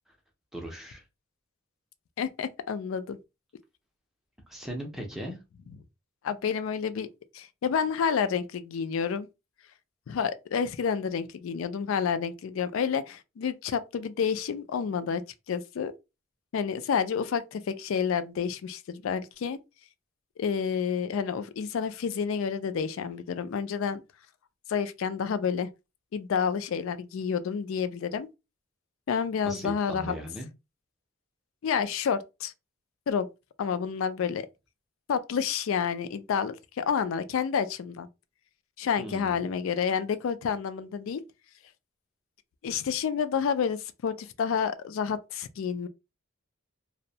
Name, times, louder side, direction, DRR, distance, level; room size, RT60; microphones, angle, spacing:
voice 1, 0.5-1.0 4.5-5.4 29.4-30.5 39.0-39.4, right 1 dB, ahead, 0.5 m, -38 dB
voice 2, 2.2-3.2 6.2-7.1 7.3-9.3 10.1-15.2 15.5-15.9 16.5-19.6 20.4-24.0 24.7-25.7 26.1-28.3 29.1-30.1 31.6-32.5 33.1-33.3 33.6-34.5 35.1-38.1 38.8-41.2 42.6-45.9, left 6 dB, 70° left, 0.3 m, -29 dB
2.6 x 2.1 x 2.6 m
head